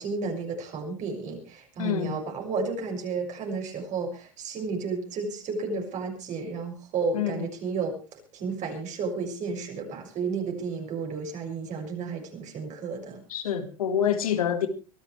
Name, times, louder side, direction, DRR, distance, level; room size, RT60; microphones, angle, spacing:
voice 1, 0.0-8.0 8.3-13.2, right 4 dB, 45° right, 6.9 m, -32 dB
voice 2, 1.8-2.2 7.1-7.5 13.3-14.7, left 9 dB, 85° left, 2.1 m, -27 dB
24.0 x 14.0 x 3.4 m
hypercardioid pair, 100°, 18 cm